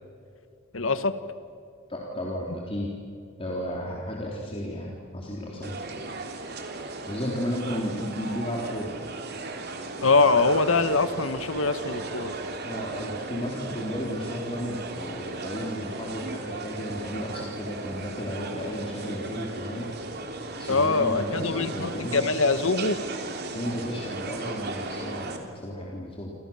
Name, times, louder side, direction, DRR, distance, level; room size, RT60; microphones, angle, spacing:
voice 1, 0.7-1.1 10.0-12.3 20.7-23.0, left 3 dB, 70° left, 11 dB, 1.6 m, -23 dB
voice 2, 1.9-3.0 3.4-5.8 7.1-9.0 12.6-19.9 20.6-22.3 23.5-26.4, equal, 25° left, -3 dB, 3.7 m, -33 dB
sound 1, 5.6-25.4, right 2 dB, 55° right, 3.3 m, -36 dB
28.0 x 27.5 x 7.3 m, 2.5 s
head